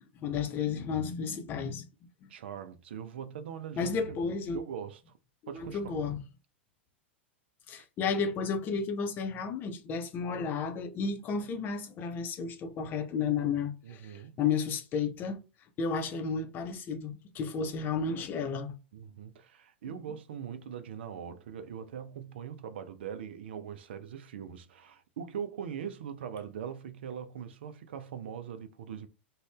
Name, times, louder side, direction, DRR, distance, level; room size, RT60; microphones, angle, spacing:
voice 1, 0.1-1.9 2.2-2.3 3.8-4.6 5.5-6.2 7.7-15.4 15.8-18.7, left 5 dB, 30° left, 0.6 m, -32 dB
voice 2, 2.3-4.2 4.5-5.2 5.5-6.0 13.8-14.4 18.9-29.1, right 8 dB, 60° right, 0.4 m, -41 dB
2.5 x 2.1 x 3.3 m
figure-of-eight pair, 90°, 6 cm